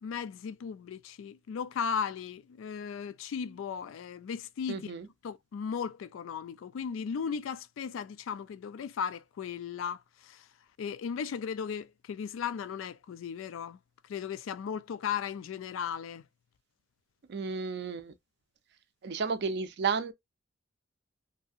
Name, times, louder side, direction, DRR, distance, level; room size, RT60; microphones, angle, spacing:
voice 1, 0.0-4.9 5.2-10.5 10.8-13.8 14.0-16.2, left 7 dB, 75° left, 0.3 m, -36 dB
voice 2, 4.7-5.1 17.3-18.1 19.0-20.1, right 5 dB, 55° right, 0.4 m, -32 dB
2.7 x 2.4 x 2.6 m
head